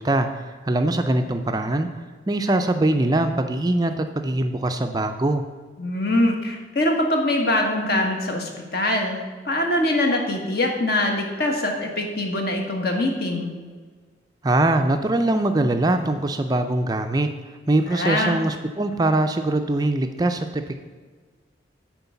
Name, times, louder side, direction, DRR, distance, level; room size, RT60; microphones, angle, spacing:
voice 1, 0.0-1.9 2.3-5.4 14.4-17.3 17.7-20.7, right 2 dB, 20° right, 7 dB, 0.4 m, -22 dB
voice 2, 5.8-13.5 17.9-18.4, left 1 dB, 55° left, 2 dB, 1.5 m, -23 dB
9.5 x 4.6 x 7.0 m, 1.5 s
head